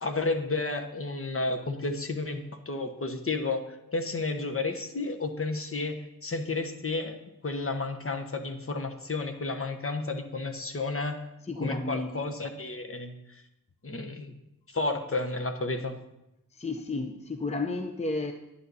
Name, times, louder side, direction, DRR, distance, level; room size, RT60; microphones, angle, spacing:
voice 1, 0.0-7.2 7.4-11.2 11.6-13.1 13.8-14.3 14.7-16.0, left 3 dB, 40° left, 6 dB, 1.2 m, -32 dB
voice 2, 11.5-12.1 16.5-18.3, left 3 dB, 20° left, 6 dB, 0.8 m, -32 dB
11.0 x 9.7 x 4.1 m, 0.88 s
cardioid pair, 75°, 35 cm